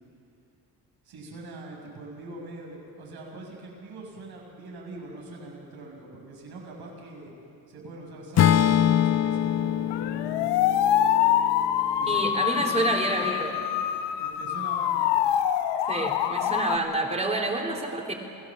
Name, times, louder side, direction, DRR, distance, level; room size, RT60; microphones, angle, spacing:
voice 1, 1.0-7.3 7.7-10.7 12.0-13.3 14.2-15.1, right 2 dB, 70° right, -1 dB, 6.8 m, -43 dB
Acoustic guitar / Strum, 8.4-12.6, left 10 dB, 40° left, 0.6 m, -24 dB
sound 1, 9.9-16.8, left 10 dB, 85° left, 1.0 m, -25 dB
voice 2, 12.1-13.8 15.9-18.1, right 2 dB, 15° right, 1 dB, 3.5 m, -28 dB
28.5 x 17.5 x 7.4 m, 2.6 s
cardioid pair, 110°, 40 cm